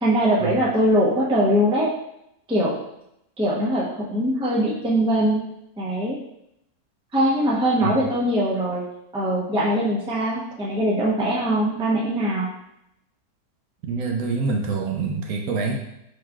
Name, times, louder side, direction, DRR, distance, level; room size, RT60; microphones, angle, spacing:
voice 1, 0.0-1.9 2.5-2.8 3.4-5.5 5.8-6.2 7.1-8.8 9.1-12.5, equal, 5° right, -5 dB, 0.5 m, -22 dB
voice 2, 13.8-15.8, right 4 dB, 75° right, 1 dB, 1.1 m, -26 dB
4.8 x 3.9 x 2.3 m, 0.80 s
omnidirectional pair, 1.6 m